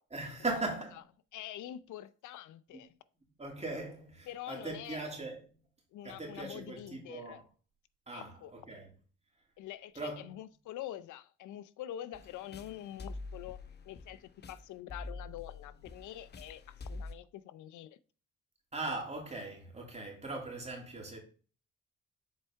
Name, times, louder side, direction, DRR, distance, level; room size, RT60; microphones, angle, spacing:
voice 1, 0.1-0.9 2.7-2.8 3.4-5.6 6.0-7.4 8.1-8.9 9.9-10.4 18.7-21.2, right 2 dB, 20° right, 2.8 m, -39 dB
voice 2, 1.3-2.9 4.3-5.0 5.9-7.4 8.1-8.5 9.6-13.6 13.9-18.0, left 12 dB, 75° left, 0.6 m, -45 dB
sound 1, 12.1-17.1, left 3 dB, 35° left, 0.8 m, -46 dB
7.4 x 4.5 x 3.5 m
cardioid pair, 90°, 30 cm